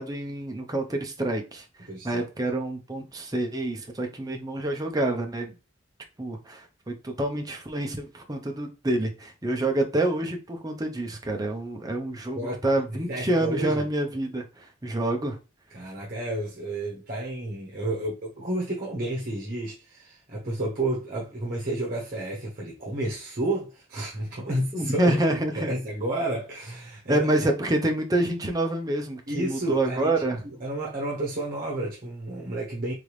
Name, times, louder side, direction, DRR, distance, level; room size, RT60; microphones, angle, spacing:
voice 1, 0.0-1.6 2.0-5.5 6.2-15.4 24.7-25.7 27.1-30.4, right 1 dB, 20° right, 0.7 m, -27 dB
voice 2, 1.9-2.2 12.3-12.6 13.1-13.9 15.7-27.3 29.3-30.1 30.6-32.9, right 1 dB, 45° right, 1.0 m, -31 dB
3.8 x 3.4 x 3.1 m
head